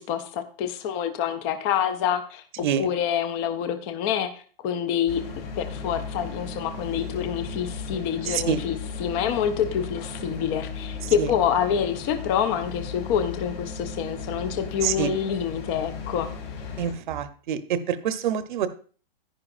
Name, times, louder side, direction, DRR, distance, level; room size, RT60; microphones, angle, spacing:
voice 1, 0.0-5.2 5.6-16.3, left 8 dB, 15° left, 8 dB, 0.3 m, -27 dB
sound 1, 5.1-16.9, left 5 dB, 80° left, 3.9 m, -36 dB
voice 2, 8.3-8.6 11.2-11.3 14.8-15.1 16.8-18.7, right 9 dB, 55° right, 13 dB, 0.9 m, -26 dB
10.5 x 9.5 x 2.5 m, 0.40 s
hypercardioid pair, 150°, 29 cm